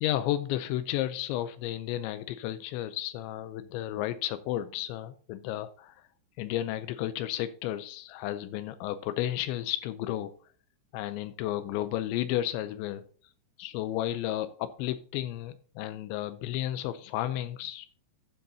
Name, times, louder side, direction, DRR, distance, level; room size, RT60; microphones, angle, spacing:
voice 1, 0.0-6.0 6.4-10.3 10.9-13.0 13.6-17.9, left 13 dB, 85° left, 11 dB, 2.9 m, -32 dB
12.5 x 7.8 x 2.7 m, 0.43 s
omnidirectional pair, 5.1 m